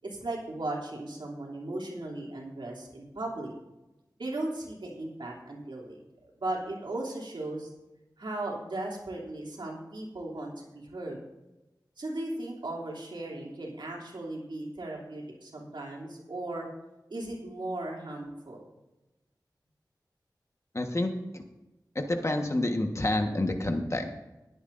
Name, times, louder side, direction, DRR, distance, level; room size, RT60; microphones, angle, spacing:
voice 1, 0.0-3.5 4.2-6.0 6.4-7.7 8.2-11.2 12.0-16.7 17.1-18.6, right 2 dB, 85° right, -3 dB, 3.0 m, -37 dB
voice 2, 20.7-21.4 21.9-24.2, left 1 dB, 40° left, 4 dB, 1.4 m, -29 dB
19.5 x 9.5 x 2.7 m, 1.0 s
wide cardioid pair, 65°, 8 cm